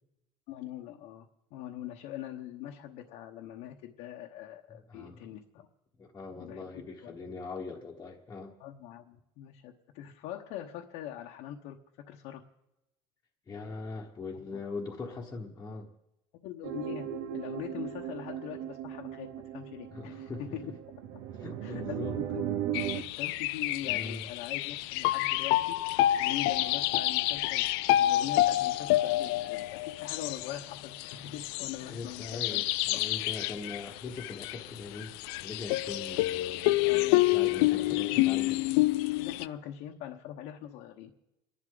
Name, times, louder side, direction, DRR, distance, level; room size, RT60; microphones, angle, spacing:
voice 1, 0.5-5.7 6.4-7.1 8.6-11.8 12.1-12.4 14.5-14.6 16.4-17.1 17.3-19.3 19.5-20.6 21.6-21.8 22.2-27.7 28.0-32.6 32.9-33.0 36.8-37.2 37.5-38.2 39.2-41.1, left 11 dB, 65° left, 2 dB, 1.0 m, -42 dB
voice 2, 4.7-5.3 6.0-8.5 13.5-15.9 19.9-20.7 21.4-22.2 23.8-24.2 31.9-38.6, left 4 dB, 20° left, -3 dB, 1.2 m, -41 dB
sound 1, 16.6-23.0, right 11 dB, 75° right, 1.1 m, -37 dB
sound 2, 22.7-39.5, left 16 dB, 85° left, 0.4 m, -28 dB
30.0 x 11.0 x 3.9 m, 0.94 s
cardioid pair, 155°, 12 cm